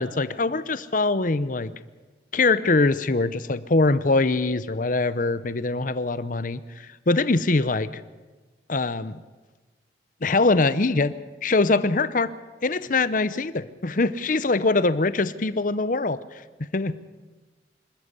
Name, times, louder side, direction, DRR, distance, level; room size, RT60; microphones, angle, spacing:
voice 1, 0.0-1.7 2.3-8.0 8.7-9.2 10.2-11.2 11.4-12.3 12.6-16.2 16.7-17.0, left 3 dB, 45° left, 15 dB, 0.8 m, -23 dB
26.0 x 13.0 x 8.3 m, 1.3 s
head